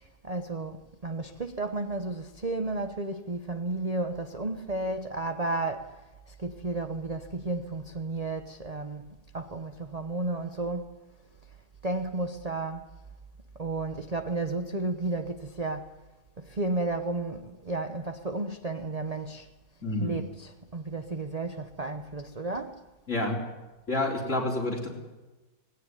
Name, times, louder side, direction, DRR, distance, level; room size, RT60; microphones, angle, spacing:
voice 1, 0.2-0.8 1.0-5.9 6.4-9.0 9.3-10.9 11.8-12.9 13.6-15.9 16.4-19.5 20.0-22.8, right 2 dB, 30° right, 0.9 m, -32 dB
voice 2, 19.8-20.2 23.1-23.4 23.9-24.9, left 2 dB, 45° left, 4.4 m, -28 dB
19.0 x 17.5 x 9.7 m
omnidirectional pair, 1.8 m